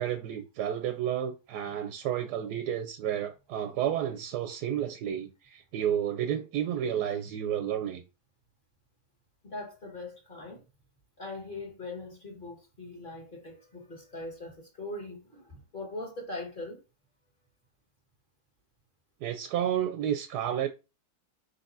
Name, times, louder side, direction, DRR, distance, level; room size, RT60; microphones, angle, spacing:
voice 1, 0.0-8.0 19.2-20.7, right 10 dB, 75° right, 1.1 m, -31 dB
voice 2, 9.4-10.6 11.2-16.8, left 2 dB, 30° left, 1.6 m, -41 dB
4.8 x 4.0 x 2.6 m
omnidirectional pair, 1.9 m